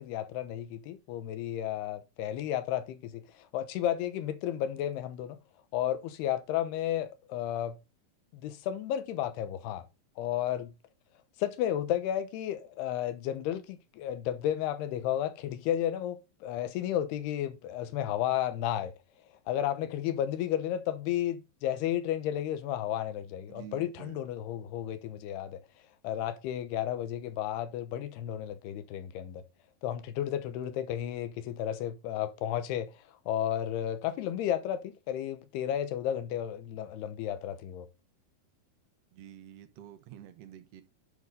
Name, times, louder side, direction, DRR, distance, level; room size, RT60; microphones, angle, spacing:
voice 1, 0.0-5.4 5.7-7.8 8.3-9.9 10.2-10.7 11.4-18.9 19.5-25.6 26.0-29.4 29.8-32.9 33.3-37.9, left 11 dB, 90° left, 3.0 m, -33 dB
voice 2, 23.5-24.2 39.1-40.8, right 10 dB, 70° right, 1.5 m, -49 dB
10.5 x 4.9 x 3.8 m
omnidirectional pair, 4.5 m